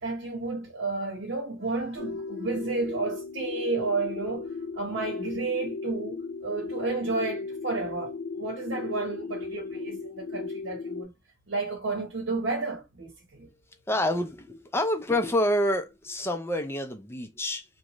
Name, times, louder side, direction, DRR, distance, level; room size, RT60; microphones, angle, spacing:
voice 1, 0.0-4.5 4.7-11.1 11.5-13.5, right 3 dB, 65° right, 1.0 m, -32 dB
sound 1, 2.0-11.0, left 4 dB, 80° left, 0.6 m, -36 dB
voice 2, 13.9-17.6, left 1 dB, 15° left, 0.4 m, -27 dB
2.4 x 2.2 x 3.0 m
head